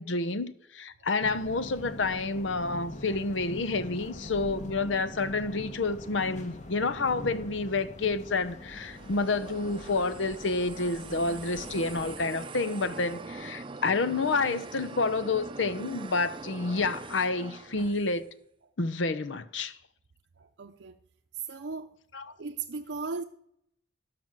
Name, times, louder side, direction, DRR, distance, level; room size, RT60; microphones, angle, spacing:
voice 1, 0.0-18.3 18.8-19.8 22.1-22.3, left 3 dB, 90° left, 0.8 m, -29 dB
sound 1, 1.2-12.2, left 1 dB, 40° left, 1.3 m, -43 dB
sound 2, 8.6-18.3, right 3 dB, 30° right, 0.5 m, -43 dB
voice 2, 20.6-20.9 21.5-21.9 22.4-23.2, right 4 dB, 75° right, 0.7 m, -36 dB
12.5 x 6.0 x 7.4 m
head